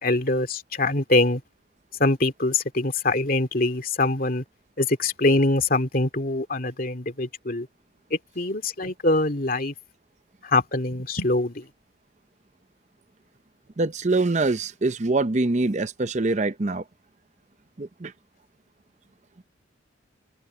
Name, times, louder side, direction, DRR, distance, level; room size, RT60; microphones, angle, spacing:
voice 1, 0.0-1.4 2.0-4.4 4.8-7.7 8.1-9.7 10.4-11.7, left 2 dB, 50° left, 2.4 m, -24 dB
voice 2, 13.8-16.8 17.8-18.1, right 3 dB, 40° right, 0.7 m, -24 dB
head